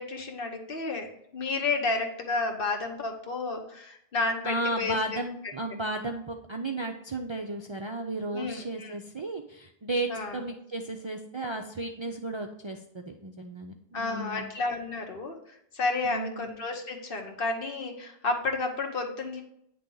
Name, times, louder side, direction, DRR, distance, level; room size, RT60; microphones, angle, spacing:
voice 1, 0.0-5.2 8.3-9.0 10.1-10.4 13.9-19.4, left 3 dB, 65° left, 4 dB, 1.1 m, -31 dB
voice 2, 4.4-14.5 16.1-16.5, right 2 dB, 45° right, 2 dB, 0.4 m, -34 dB
9.4 x 3.3 x 3.8 m, 0.75 s
omnidirectional pair, 1.0 m